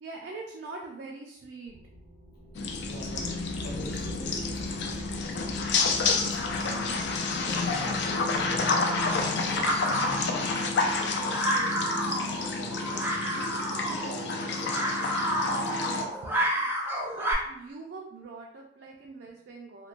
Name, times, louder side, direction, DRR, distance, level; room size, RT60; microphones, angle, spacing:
voice 1, 0.0-1.8 6.5-10.5 11.0-12.4 13.2-13.3 15.8-19.9, right 3 dB, 75° right, -2 dB, 0.4 m, -44 dB
sound 1, 1.7-11.7, equal, 25° left, 0.7 m, -44 dB
sound 2, 2.5-16.0, left 4 dB, 75° left, 0.4 m, -29 dB
voice 2, 2.8-3.3 3.6-5.7 6.2-6.9 12.5-12.8 13.3-15.1, right 1 dB, 60° left, -3 dB, 0.8 m, -46 dB
sound 3, 7.5-17.3, equal, 10° right, 0.4 m, -31 dB
3.0 x 2.1 x 2.4 m, 0.77 s
head